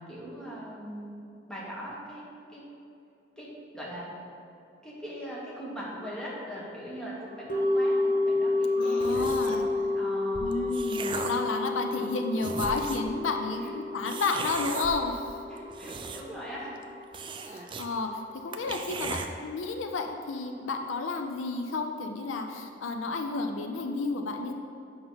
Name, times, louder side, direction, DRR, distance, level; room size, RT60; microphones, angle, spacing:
voice 1, 0.0-2.2 2.5-2.7 3.4-4.1 4.8-10.6 12.6-12.8 13.6-13.8 15.4-16.7 17.5-17.8, equal, 5° left, -6 dB, 1.4 m, -41 dB
sound 1, 7.5-17.8 18.0-18.1, left 2 dB, 45° left, 1.0 m, -30 dB
voice 2, 8.8-9.6 10.4-13.6 13.9-15.2 17.4-24.5, left 3 dB, 75° left, 4 dB, 0.5 m, -31 dB
sound 2, 9.0-9.7 10.3-11.5 12.1-12.2 12.4-13.1 14.1-14.9 15.6-16.5 16.7-16.8 17.1-17.9 18.2-18.3 18.5-19.3, right 4 dB, 25° right, 0.3 m, -37 dB
sound 3, 9.1-16.0, equal, 50° right, 1.1 m, -49 dB
7.8 x 5.3 x 4.0 m, 2.6 s
head